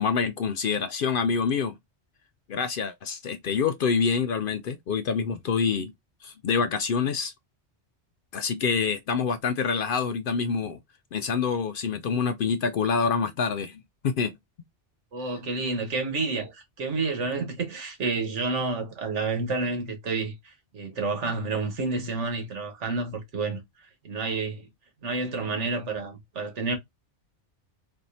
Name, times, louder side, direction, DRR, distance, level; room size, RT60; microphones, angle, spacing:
voice 1, 0.0-1.7 2.5-5.9 6.2-7.3 8.3-10.8 11.1-14.3, left 5 dB, 60° left, 0.6 m, -26 dB
voice 2, 15.1-23.6 24.0-24.7 25.0-26.8, right 3 dB, 85° right, 1.5 m, -29 dB
4.2 x 2.7 x 2.7 m
omnidirectional pair, 1.2 m